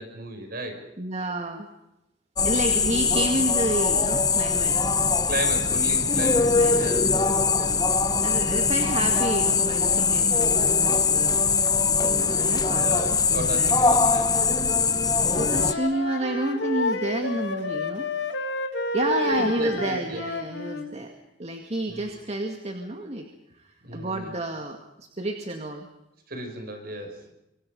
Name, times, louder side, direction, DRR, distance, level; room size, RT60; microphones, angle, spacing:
voice 1, 0.0-0.8 5.3-7.8 12.2-12.5 12.8-14.5 19.2-20.2 21.9-22.1 23.8-24.3 26.3-27.3, right 1 dB, 55° right, 5 dB, 6.4 m, -35 dB
voice 2, 1.0-1.7 2.4-4.9 6.5-7.2 7.8-11.4 11.9-13.8 15.3-18.1 18.9-21.1 21.4-23.3 23.5-25.9, right 1 dB, 35° right, 4 dB, 2.1 m, -30 dB
sound 1, 2.4-15.7, left 5 dB, 20° left, 1.0 m, -22 dB
Wind instrument woodwind instrument, 15.3-20.9, left 2 dB, 80° left, 2.6 m, -30 dB
26.0 x 24.5 x 5.4 m, 0.88 s
head